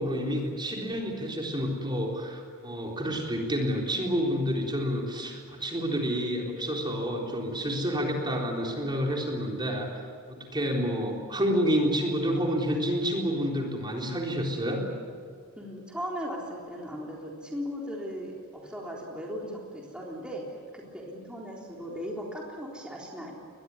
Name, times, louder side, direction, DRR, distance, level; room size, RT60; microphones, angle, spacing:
voice 1, 0.0-14.8, equal, 20° right, 0 dB, 3.9 m, -29 dB
voice 2, 15.6-23.3, equal, 5° right, -3 dB, 3.7 m, -37 dB
23.0 x 20.5 x 9.7 m, 2.1 s
head